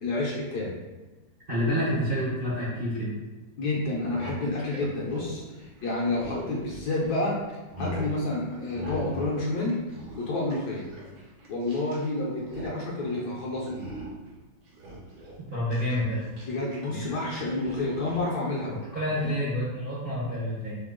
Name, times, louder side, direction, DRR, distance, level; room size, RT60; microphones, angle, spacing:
voice 1, 0.0-0.7 3.6-7.4 7.8-9.8 10.2-10.9 11.5-13.9 16.5-18.8 19.2-19.3, left 2 dB, 65° left, -4 dB, 1.2 m, -29 dB
voice 2, 1.5-3.1 15.5-16.2 16.9-17.0 18.9-20.8, equal, 40° right, -8 dB, 0.8 m, -28 dB
sound 1, 4.1-7.1 7.5-8.2 8.7-9.4 9.6-12.1 12.3-12.7 13.0-13.3 13.7-14.3 14.7-16.8 17.0-18.3 19.1-19.3, equal, 80° right, 1.8 m, -40 dB
3.9 x 2.9 x 3.6 m, 1.1 s
omnidirectional pair, 2.1 m